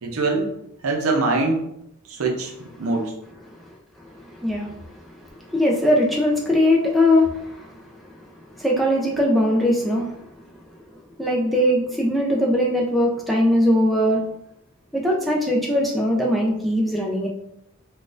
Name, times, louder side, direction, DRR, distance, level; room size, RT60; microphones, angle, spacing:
voice 1, 0.0-0.5 0.8-1.7 2.1-2.5 2.8-3.1, right 3 dB, 85° right, 1 dB, 0.6 m, -23 dB
voice 2, 4.3-4.8 5.5-7.7 8.6-10.2 11.2-14.3 14.9-17.3, left 1 dB, ahead, -3 dB, 0.4 m, -20 dB
3.9 x 2.4 x 2.4 m, 0.79 s
head